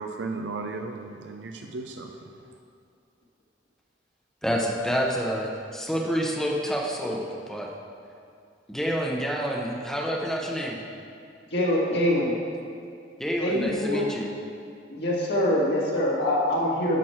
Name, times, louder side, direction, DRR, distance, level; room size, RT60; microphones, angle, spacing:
voice 1, 0.0-2.1, right 3 dB, 80° right, 4 dB, 0.5 m, -35 dB
voice 2, 4.4-7.7 8.7-10.8 13.2-14.3, equal, 5° left, -1 dB, 0.8 m, -28 dB
voice 3, 11.5-12.3 13.4-14.0 14.9-17.0, left 1 dB, 65° left, -5 dB, 1.9 m, -24 dB
11.0 x 6.2 x 4.4 m, 2.3 s
head